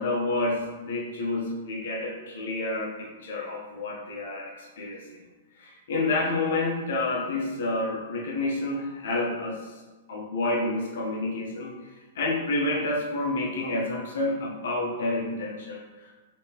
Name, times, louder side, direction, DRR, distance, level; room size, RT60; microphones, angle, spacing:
voice 1, 0.0-5.2 5.6-9.7 10.1-11.7 12.1-16.1, left 2 dB, 70° left, -2 dB, 0.8 m, -29 dB
3.5 x 3.0 x 2.9 m, 1.3 s
hypercardioid pair, 160°, 0 cm